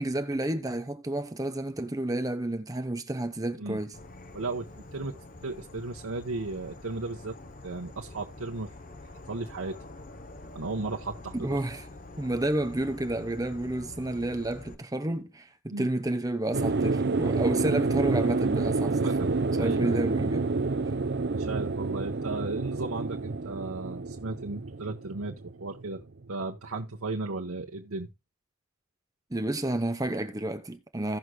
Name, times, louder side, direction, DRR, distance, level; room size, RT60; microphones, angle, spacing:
voice 1, 0.0-3.9 11.3-11.9 12.2-19.1 19.6-20.5 29.3-31.2, right 1 dB, 15° right, 0.8 m, -30 dB
Insect / Frog, 3.9-14.8, left 2 dB, 40° left, 0.9 m, -46 dB
voice 2, 4.3-5.2 5.4-8.7 9.3-9.8 10.5-11.6 15.7-15.9 18.8-19.3 19.6-20.0 21.3-26.0 26.3-28.1, right 3 dB, 85° right, 1.2 m, -35 dB
sound 1, 16.5-26.2, right 3 dB, 50° right, 0.6 m, -28 dB
16.5 x 6.4 x 2.3 m
head